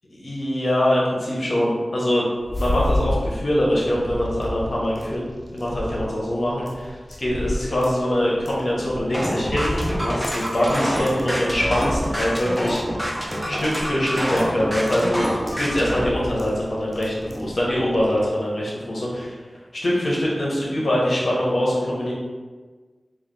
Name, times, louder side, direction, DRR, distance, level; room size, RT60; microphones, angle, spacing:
voice 1, 0.2-2.3 2.6-5.2 5.5-12.8 13.5-19.3 19.8-22.1, equal, 65° left, -5 dB, 1.2 m, -23 dB
sound 1, 2.4-18.3, left 1 dB, 30° left, 0.4 m, -32 dB
sound 2, 9.1-16.0, equal, ahead, 0.8 m, -26 dB
3.7 x 2.6 x 3.3 m, 1.4 s
cardioid pair, 45°, 0 cm